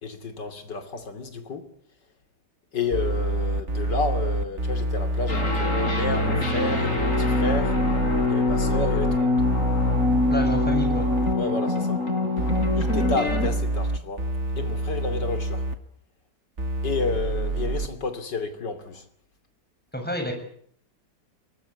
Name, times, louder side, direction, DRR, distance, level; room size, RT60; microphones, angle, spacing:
voice 1, 0.0-1.7 2.7-7.8 8.3-9.4 11.3-12.0 12.8-14.3 14.6-15.7 16.8-19.0, left 3 dB, 90° left, 3.5 m, -31 dB
sound 1, 2.9-11.3 12.4-15.8 16.6-17.9, right 2 dB, 40° right, 2.2 m, -27 dB
sound 2, 5.3-13.5, left 3 dB, 50° left, 4.9 m, -24 dB
voice 2, 10.3-11.1 19.9-20.3, equal, 5° left, 7.2 m, -28 dB
24.0 x 20.0 x 9.7 m
omnidirectional pair, 1.8 m